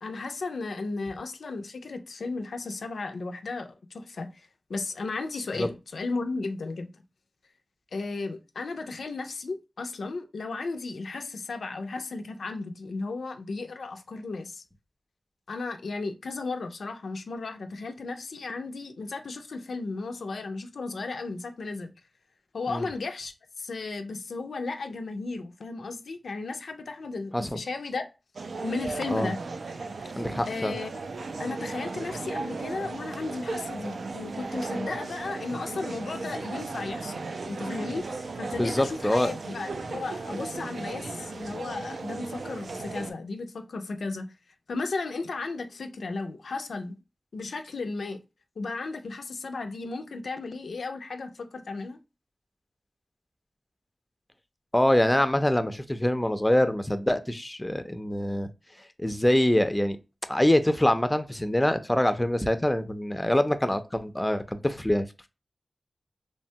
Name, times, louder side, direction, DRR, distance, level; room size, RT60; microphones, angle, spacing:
voice 1, 0.0-4.3 4.7-6.9 7.9-14.6 15.5-21.9 22.5-28.1 28.6-29.4 30.4-30.9 31.4-44.3 44.7-47.0 47.3-48.2 48.6-52.0, left 3 dB, 90° left, 0.3 m, -35 dB
sound 1, 28.4-43.1, right 3 dB, 80° right, 0.3 m, -36 dB
voice 2, 30.2-30.7 38.5-39.3 54.7-58.5 59.0-60.0 60.3-65.3, left 1 dB, 15° left, 0.4 m, -25 dB
3.0 x 2.1 x 2.6 m
cardioid pair, 50°, 0 cm